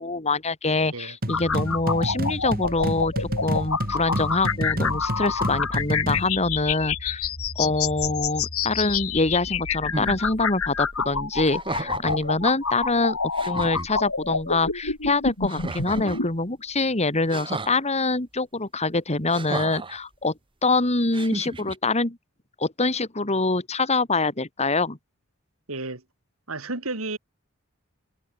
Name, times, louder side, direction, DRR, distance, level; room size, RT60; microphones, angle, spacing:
voice 1, 0.0-7.3 7.6-13.2 13.4-20.3 20.6-22.2 22.6-25.0, left 3 dB, 30° left, 2.5 m, -25 dB
sound 1, 1.2-6.3, right 1 dB, 45° right, 5.0 m, -29 dB
sound 2, 1.3-16.3, left 5 dB, 85° left, 6.3 m, -28 dB
sound 3, 9.9-10.2 11.4-12.3 13.0-13.1 13.3-13.9 15.5-16.3 17.3-17.7 19.3-20.0 21.1-21.8, right 2 dB, 25° right, 1.5 m, -33 dB
voice 2, 25.7-26.0 26.5-27.2, right 2 dB, 75° right, 3.6 m, -32 dB
head